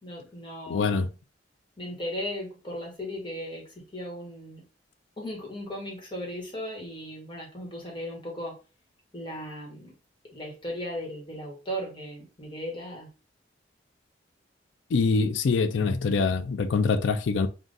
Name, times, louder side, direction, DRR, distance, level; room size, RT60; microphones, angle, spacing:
voice 1, 0.0-1.1 1.8-4.6 5.2-8.6 9.1-9.9 10.3-13.1, equal, 25° left, 1.4 m, -37 dB
voice 2, 0.7-1.1 14.9-17.5, left 4 dB, 80° left, 0.4 m, -24 dB
3.6 x 2.4 x 3.9 m
head